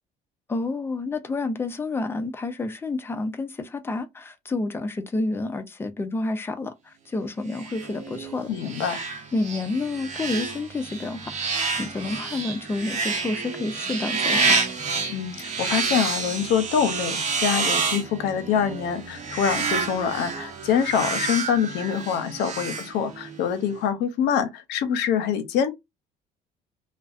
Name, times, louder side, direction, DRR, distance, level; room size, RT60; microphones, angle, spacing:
voice 1, 0.5-8.5 9.3-14.6, left 3 dB, 15° left, 0.5 m, -29 dB
sound 1, 7.5-23.4, right 4 dB, 45° right, 0.8 m, -29 dB
voice 2, 8.5-9.1 15.1-25.7, left 8 dB, 85° left, 0.6 m, -25 dB
2.5 x 2.1 x 2.4 m
cardioid pair, 110°, 17 cm